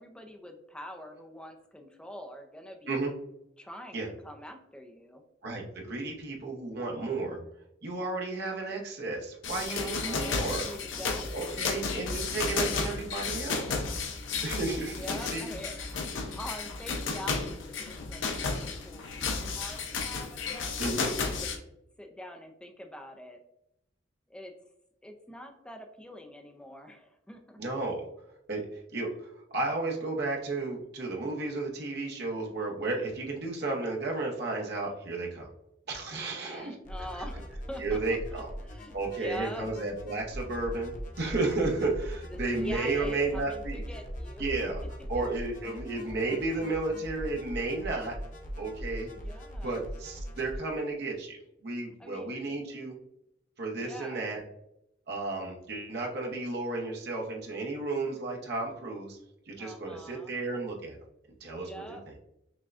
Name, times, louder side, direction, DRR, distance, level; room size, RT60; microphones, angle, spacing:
voice 1, 0.0-2.9 3.6-5.2 9.6-11.8 14.9-15.8 16.3-21.6 22.0-23.4 24.3-24.5 25.0-27.6 36.1-39.7 42.2-44.4 49.1-49.8 52.0-52.3 53.8-54.3 59.6-60.4 61.6-62.0, equal, 5° left, 4 dB, 0.4 m, -45 dB
voice 2, 5.4-7.4 7.8-10.6 11.3-13.8 14.4-15.5 20.8-21.1 27.6-28.1 28.5-28.6 28.9-35.5 35.9-36.8 37.8-38.5 38.9-43.8 44.4-44.8 45.1-48.1 48.5-49.1 49.6-53.0 53.6-54.4 55.1-59.2 59.5-61.0 61.4-62.0, right 3 dB, 60° right, 0 dB, 0.8 m, -33 dB
sound 1, 9.4-21.6, left 4 dB, 85° left, 0.6 m, -33 dB
sound 2, 36.8-50.6, equal, 45° left, 0.6 m, -41 dB
6.0 x 2.2 x 2.4 m, 0.81 s
head